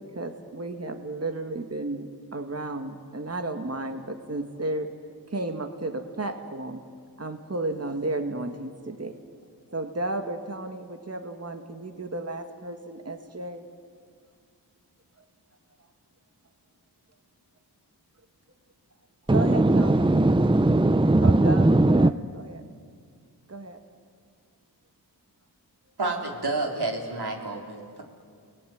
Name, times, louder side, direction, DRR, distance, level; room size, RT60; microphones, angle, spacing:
voice 1, 0.0-4.9 5.3-6.8 7.2-9.2 9.7-13.6 19.3-20.1 21.2-22.6 23.5-23.8, right 2 dB, 40° right, 6 dB, 2.1 m, -33 dB
voice 2, 19.3-22.1, right 2 dB, 15° right, 14 dB, 0.7 m, -19 dB
voice 3, 26.0-28.0, right 2 dB, 75° right, 1 dB, 4.3 m, -30 dB
30.0 x 19.0 x 9.6 m, 2.2 s
cardioid pair, 45°, 40 cm